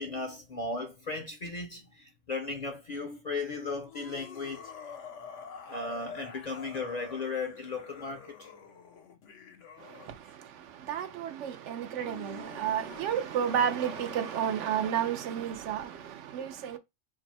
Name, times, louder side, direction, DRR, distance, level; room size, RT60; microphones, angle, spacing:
voice 1, 0.0-4.7 5.7-8.5, left 3 dB, 45° left, 0.6 m, -36 dB
sound 1, 3.9-10.3 11.7-16.1, left 6 dB, 80° left, 1.1 m, -48 dB
voice 2, 9.8-16.8, right 9 dB, 80° right, 0.9 m, -32 dB
2.7 x 2.6 x 4.1 m
omnidirectional pair, 1.2 m